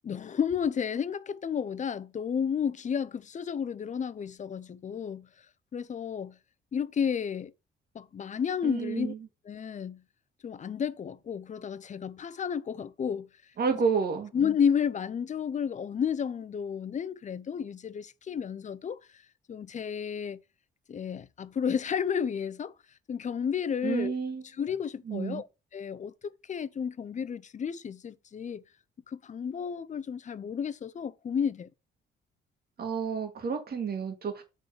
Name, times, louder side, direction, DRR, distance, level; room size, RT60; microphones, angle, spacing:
voice 1, 0.0-5.3 5.7-6.4 6.7-7.5 7.9-9.1 9.5-10.0 10.4-13.3 14.3-19.0 19.5-20.4 20.9-22.7 23.1-24.1 24.6-25.5 25.7-26.1 26.5-28.6 29.1-31.7, left 7 dB, 40° left, 0.6 m, -32 dB
voice 2, 8.6-9.2 13.6-14.3 23.8-24.4 25.1-25.4 32.8-34.4, right 5 dB, 50° right, 2.1 m, -30 dB
7.5 x 3.8 x 6.6 m
cardioid pair, 90°, 20 cm